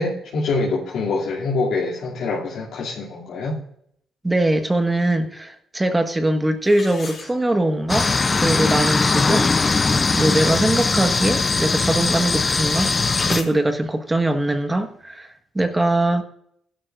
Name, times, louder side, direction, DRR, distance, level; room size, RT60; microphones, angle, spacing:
voice 1, 0.0-3.6, left 3 dB, 70° left, 2.8 m, -25 dB
voice 2, 4.2-8.1 8.4-9.8 10.1-12.9 13.3-16.2, right 1 dB, 15° right, 1.5 m, -21 dB
sound 1, 6.6-7.9 8.4-8.5 9.0-9.1 9.5-9.8 10.3-11.4 11.6-12.0 12.2-13.5, left 4 dB, 50° left, 4.2 m, -37 dB
sound 2, 7.9-13.4, left 4 dB, 30° left, 0.6 m, -20 dB
16.5 x 11.5 x 2.6 m
cardioid pair, 90°, 0 cm